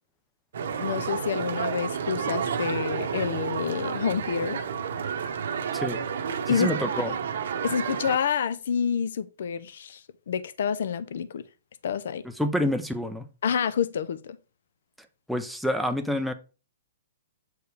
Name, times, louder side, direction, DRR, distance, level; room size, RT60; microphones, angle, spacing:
sound 1, 0.5-8.2, right 7 dB, 65° right, 0.9 m, -30 dB
voice 1, 0.8-4.6 6.5-6.7 7.1-7.2 7.6-10.0 10.3-11.4 11.8-12.2 13.4-14.4, left 7 dB, 60° left, 0.5 m, -28 dB
voice 2, 6.5-7.1 12.4-13.3 15.3-16.3, equal, ahead, 0.5 m, -27 dB
7.9 x 4.6 x 3.3 m
hypercardioid pair, 165°, 0 cm